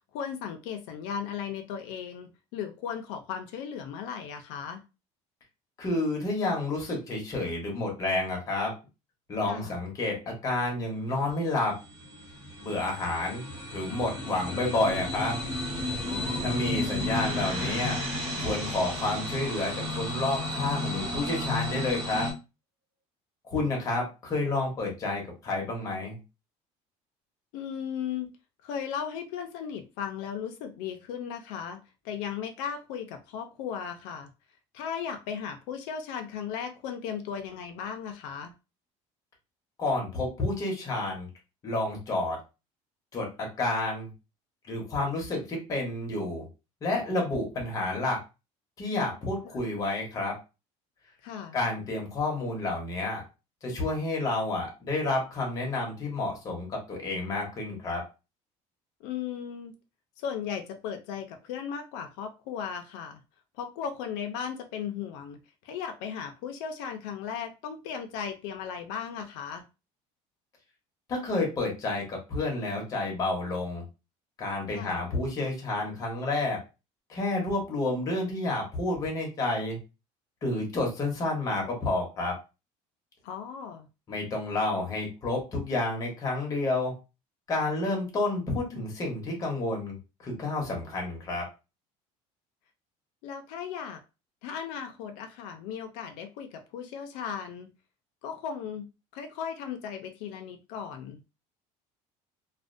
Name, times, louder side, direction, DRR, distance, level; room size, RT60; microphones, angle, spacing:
voice 1, 0.1-4.8 9.4-9.7 16.0-16.6 27.5-28.3 28.6-31.8 32.0-34.3 34.7-38.5 49.4-49.6 51.2-51.6 59.0-59.7 60.2-63.2 63.6-65.4 65.6-69.7 74.7-74.9 83.2-83.9 93.2-94.0 94.4-97.7 98.2-98.9 99.1-101.2, left 7 dB, 80° left, 6 dB, 0.4 m, -36 dB
voice 2, 5.8-8.7 9.3-11.7 12.6-15.4 16.4-18.0 18.4-22.3 23.4-26.2 39.8-41.3 41.6-42.4 43.1-44.1 44.7-46.5 46.8-48.2 48.8-50.4 51.5-53.2 53.6-58.0 71.1-73.8 74.4-76.6 77.1-79.8 80.4-82.3 84.1-86.9 87.5-91.5, left 2 dB, 25° left, 0 dB, 0.8 m, -30 dB
sound 1, 11.0-22.3, left 1 dB, ahead, 1.0 m, -33 dB
sound 2, 17.0-20.4 20.9-21.0, right 1 dB, 45° right, 0.8 m, -40 dB
2.4 x 2.1 x 2.5 m, 0.28 s
cardioid pair, 170°, 14 cm